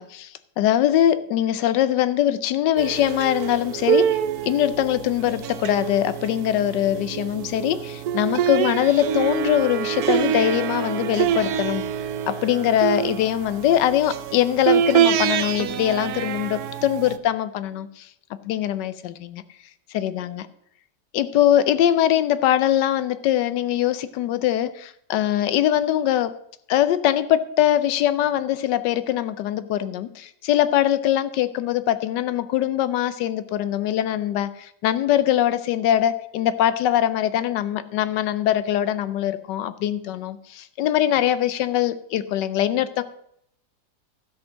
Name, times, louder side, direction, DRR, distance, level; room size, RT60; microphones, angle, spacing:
voice 1, 0.0-11.8 12.3-18.1 18.4-19.4 19.9-20.5 21.1-26.3 26.7-43.0, left 11 dB, 90° left, 14 dB, 1.3 m, -22 dB
sound 1, 2.8-17.2, right 9 dB, 75° right, 1.1 m, -25 dB
13.0 x 5.3 x 6.3 m, 0.72 s
omnidirectional pair, 1.8 m